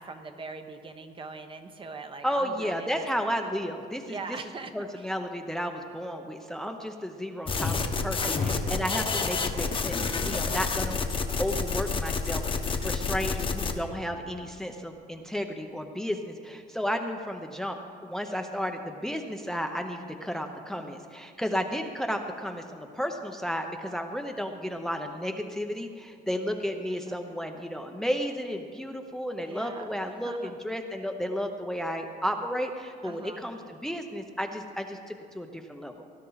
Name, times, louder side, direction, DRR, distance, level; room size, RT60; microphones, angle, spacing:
voice 1, 0.0-3.1 4.1-5.1 8.2-8.6 27.0-27.4 29.4-29.9 30.2-30.6 33.0-33.4, right 4 dB, 30° right, 7 dB, 1.0 m, -42 dB
voice 2, 2.2-4.4 4.7-35.9, equal, 5° left, 5 dB, 0.7 m, -33 dB
sound 1, 7.5-13.7, left 4 dB, 30° left, 1.1 m, -29 dB
18.5 x 11.5 x 4.0 m, 2.3 s
cardioid pair, 110°, 17 cm